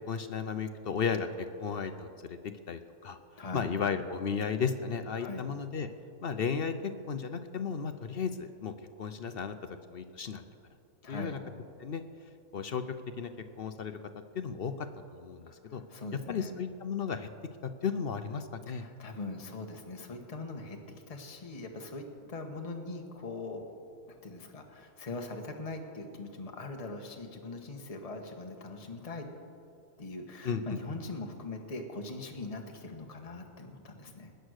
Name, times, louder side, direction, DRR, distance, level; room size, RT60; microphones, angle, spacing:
voice 1, 0.1-3.2 3.5-5.9 6.2-10.4 11.1-11.4 11.8-12.0 12.5-12.8 13.2-13.3 13.6-14.0 14.3-14.9 15.1-15.8 16.3-17.3 17.6-18.9 30.4-30.8, left 6 dB, 55° left, 9 dB, 0.7 m, -34 dB
voice 2, 11.0-11.4 15.5-16.6 18.7-23.7 24.1-29.3 30.0-34.3, left 3 dB, 25° left, 3 dB, 1.3 m, -41 dB
20.5 x 9.4 x 6.5 m, 2.5 s
omnidirectional pair, 1.6 m